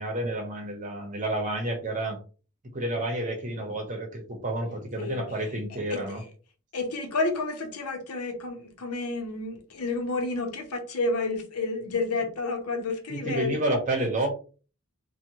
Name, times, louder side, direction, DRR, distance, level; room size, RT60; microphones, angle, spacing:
voice 1, 0.0-2.2 2.7-6.2 13.1-14.3, right 1 dB, 35° right, 3 dB, 0.8 m, -30 dB
voice 2, 5.0-5.3 5.7-6.3 6.7-13.8, left 3 dB, 85° left, 5 dB, 0.8 m, -30 dB
3.5 x 2.3 x 2.9 m, 0.37 s
head